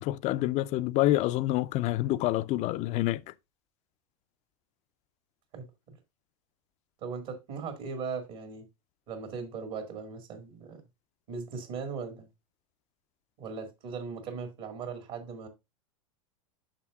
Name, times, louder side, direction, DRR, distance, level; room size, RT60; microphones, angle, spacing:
voice 1, 0.0-3.2, left 16 dB, 40° left, 0.4 m, -27 dB
voice 2, 5.5-6.0 7.0-8.7 9.1-10.8 11.3-12.3 13.4-15.5, right 5 dB, 55° right, 1.8 m, -38 dB
8.8 x 6.1 x 2.3 m
hypercardioid pair, 100°, 18 cm